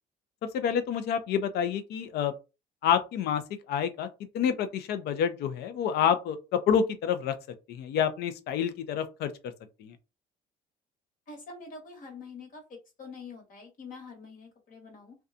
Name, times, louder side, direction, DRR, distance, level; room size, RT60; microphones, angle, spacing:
voice 1, 0.5-2.3 2.8-3.4 3.7-4.1 4.3-7.4 7.7-9.5 9.8-10.0, left 8 dB, 75° left, 0.5 m, -28 dB
voice 2, 11.3-15.2, left 4 dB, 55° left, 1.2 m, -45 dB
2.6 x 2.2 x 2.4 m
cardioid pair, 110°, 17 cm